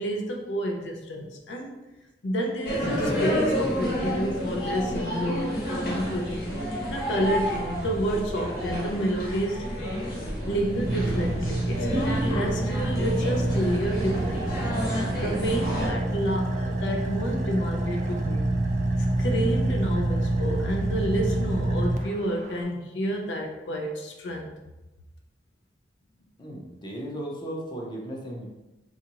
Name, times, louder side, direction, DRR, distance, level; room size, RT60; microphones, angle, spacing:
voice 1, 0.0-1.7 2.2-6.5 6.9-9.7 10.5-14.7 15.2-18.5 19.2-24.5, equal, 80° left, 2 dB, 0.5 m, -29 dB
sound 1, 2.6-15.9, equal, 60° left, 1.0 m, -30 dB
Car / Idling, 9.8-22.6, right 1 dB, 45° right, 0.3 m, -27 dB
voice 2, 26.4-28.5, right 1 dB, 25° left, -1 dB, 0.6 m, -36 dB
3.8 x 2.4 x 2.9 m, 1.0 s
head